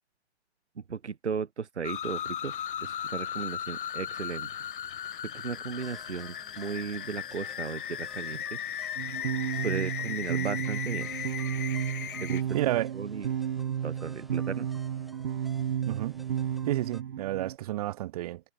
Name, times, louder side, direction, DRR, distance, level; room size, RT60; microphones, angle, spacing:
voice 1, 0.8-2.5 2.8-4.5 5.2-8.6 9.6-11.1 12.2-12.6 12.9-13.3 13.8-14.7, right 6 dB, 80° right, 1.4 m, -35 dB
sound 1, 1.8-12.4, left 9 dB, 50° left, 2.2 m, -37 dB
sound 2, 5.7-17.0, equal, ahead, 5.3 m, -55 dB
sound 3, 9.0-17.6, right 9 dB, 50° right, 3.7 m, -32 dB
voice 2, 12.5-12.9 15.9-16.2 16.7-18.4, right 15 dB, 35° right, 1.9 m, -30 dB
figure-of-eight pair, 140°, 34 cm